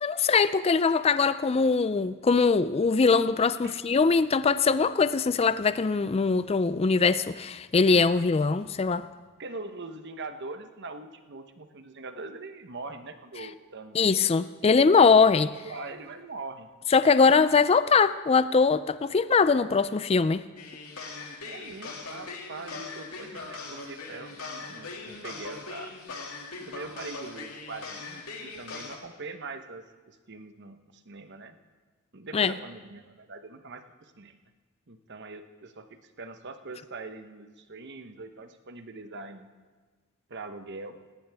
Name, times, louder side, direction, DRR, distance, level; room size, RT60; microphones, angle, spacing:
voice 1, 0.0-9.1 13.9-15.5 16.9-20.4 32.3-32.5, left 4 dB, 25° left, 14 dB, 0.3 m, -22 dB
voice 2, 9.4-14.0 14.6-16.7 19.6-19.8 21.5-25.9 26.6-31.6 32.1-34.4 34.9-35.9 36.2-39.5 40.3-41.0, right 3 dB, 50° right, 8 dB, 1.0 m, -42 dB
sound 1, 20.6-29.0, left 3 dB, 80° left, 2.4 m, -40 dB
18.5 x 17.5 x 3.5 m, 1.4 s
head